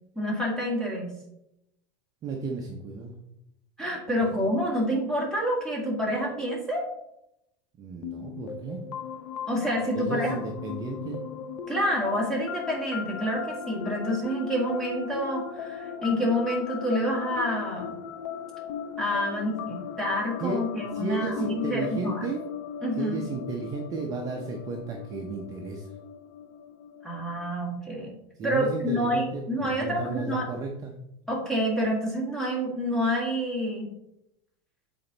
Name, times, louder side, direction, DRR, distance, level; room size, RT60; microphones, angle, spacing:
voice 1, 0.1-1.1 3.8-6.9 9.5-10.4 11.7-17.9 19.0-22.2 22.8-23.2 27.0-28.1 28.4-30.5 31.3-33.9, equal, 5° left, -3 dB, 1.9 m, -28 dB
voice 2, 2.2-3.2 7.8-8.9 9.8-11.2 20.4-22.4 22.9-25.9 28.4-30.9, right 4 dB, 25° right, 1 dB, 0.7 m, -34 dB
sound 1, 8.0-27.6, left 7 dB, 75° left, 0.7 m, -38 dB
7.7 x 4.3 x 3.9 m, 0.83 s
supercardioid pair, 160°, 14 cm